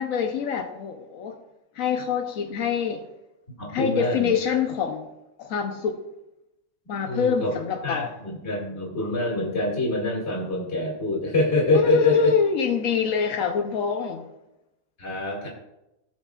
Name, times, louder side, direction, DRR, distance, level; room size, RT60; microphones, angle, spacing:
voice 1, 0.0-1.4 1.7-3.1 3.7-5.1 5.4-6.0 6.9-8.1 11.7-14.3, left 6 dB, 80° left, 4 dB, 1.1 m, -25 dB
voice 2, 3.6-4.6 7.1-7.5 7.8-12.3 15.0-15.5, left 2 dB, 50° left, -4 dB, 2.5 m, -25 dB
17.0 x 6.2 x 2.4 m, 0.92 s
omnidirectional pair, 1.4 m